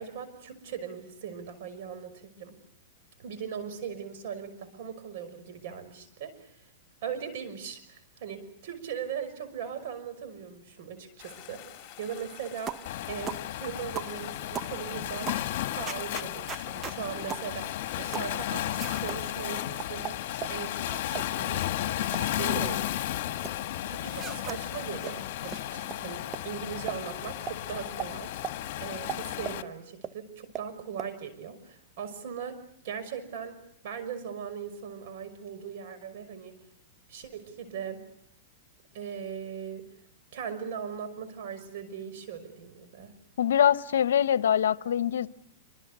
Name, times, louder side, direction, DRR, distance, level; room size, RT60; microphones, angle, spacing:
voice 1, 0.0-2.5 3.2-6.6 7.0-22.9 23.8-28.3 28.8-33.6 33.8-36.6 37.1-38.0 38.9-39.9 40.3-43.1, right 7 dB, 60° right, 11 dB, 5.8 m, -39 dB
sound 1, 11.2-29.4, left 13 dB, 35° left, 3.9 m, -48 dB
sound 2, 12.7-12.9 13.3-13.5 14.0-14.2 14.5-14.7 15.3-15.5 15.9-17.0 17.3-17.5 18.1-18.3 18.8-19.2 19.8-20.6 21.1-21.3 21.8-22.2 22.5-23.5 24.1-24.6 25.0-25.1 25.5-25.6 25.9-26.0 26.3-26.4 26.9-27.0 27.5-27.6 28.0-28.1 28.4-28.6 29.1-29.6 30.0-30.1 30.5-30.7 31.0-31.1, right 8 dB, 20° right, 1.0 m, -38 dB
Waves surf, 12.9-29.6, left 13 dB, 55° left, 1.8 m, -34 dB
voice 2, 43.4-45.3, left 9 dB, 85° left, 15 dB, 0.9 m, -24 dB
27.0 x 26.0 x 6.8 m, 0.70 s
hypercardioid pair, 145°, 0 cm